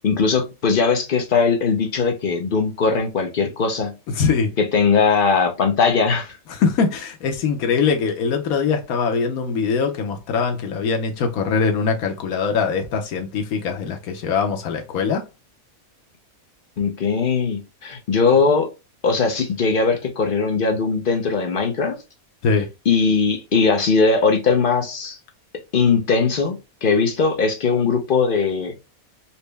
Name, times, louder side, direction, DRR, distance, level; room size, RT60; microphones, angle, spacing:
voice 1, 0.0-3.9 4.6-6.4 16.8-18.7 19.0-22.0 22.9-25.2 25.7-28.8, left 4 dB, 50° left, 0.7 m, -20 dB
voice 2, 4.1-4.5 6.5-15.2 22.4-22.7, left 5 dB, 90° left, 1.3 m, -22 dB
4.3 x 2.0 x 3.3 m
omnidirectional pair, 1.5 m